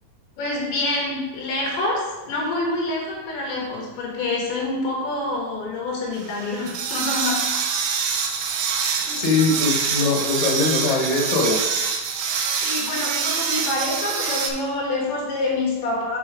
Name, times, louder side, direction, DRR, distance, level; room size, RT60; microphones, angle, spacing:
voice 1, 0.4-7.6 9.0-9.3 12.6-16.2, left 2 dB, 85° left, -2 dB, 3.7 m, -26 dB
sound 1, 6.1-14.5, right 6 dB, 80° right, 2.5 m, -25 dB
voice 2, 9.1-11.6, left 3 dB, 60° left, -2 dB, 2.4 m, -21 dB
7.5 x 4.1 x 4.9 m, 1.1 s
omnidirectional pair, 4.4 m